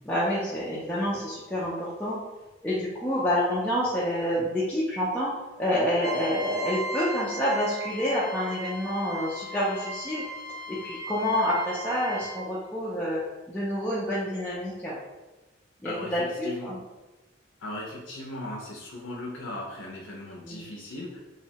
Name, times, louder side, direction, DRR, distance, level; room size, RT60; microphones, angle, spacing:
voice 1, 0.0-2.2 2.6-10.2 10.7-13.2 13.5-15.0 15.8-16.8 20.4-20.6, equal, 5° left, -9 dB, 0.3 m, -28 dB
Trumpet, 6.0-12.4, right 1 dB, 50° right, 0.5 m, -37 dB
voice 2, 15.8-16.8 17.6-21.2, left 1 dB, 75° left, -2 dB, 0.5 m, -38 dB
2.6 x 2.1 x 2.8 m, 1.1 s
head